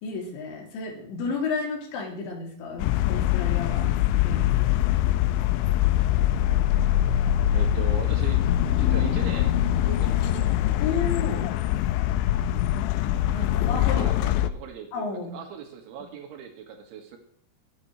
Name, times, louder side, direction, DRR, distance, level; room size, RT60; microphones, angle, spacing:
voice 1, 0.0-3.9 4.2-4.8 10.8-11.5 13.3-14.0 14.9-15.4, left 4 dB, 65° left, 0 dB, 4.8 m, -32 dB
sound 1, 2.8-14.5, left 12 dB, 85° left, 2.7 m, -23 dB
voice 2, 7.5-8.5 8.7-9.6 9.9-10.6 13.8-15.1 15.3-17.2, right 7 dB, 70° right, 3 dB, 3.9 m, -39 dB
19.5 x 10.5 x 3.2 m, 0.62 s
omnidirectional pair, 5.9 m